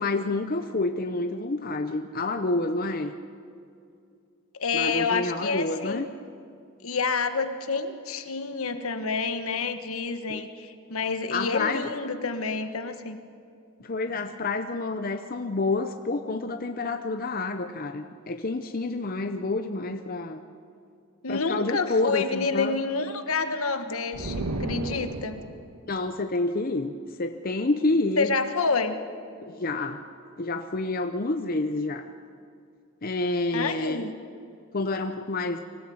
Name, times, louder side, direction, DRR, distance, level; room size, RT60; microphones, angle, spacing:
voice 1, 0.0-3.1 4.7-6.1 10.3-10.4 11.3-11.9 13.8-20.4 21.3-22.8 25.9-28.4 29.5-30.0 30.4-32.1 33.0-34.0 34.7-35.6, left 2 dB, 40° left, 7 dB, 0.7 m, -28 dB
voice 2, 4.6-6.1 6.8-13.2 21.2-25.4 28.2-29.0 33.5-34.1, left 4 dB, 75° left, 9 dB, 1.4 m, -28 dB
sound 1, 24.1-25.8, right 2 dB, 90° right, 1.4 m, -32 dB
25.0 x 15.5 x 8.6 m, 2.4 s
head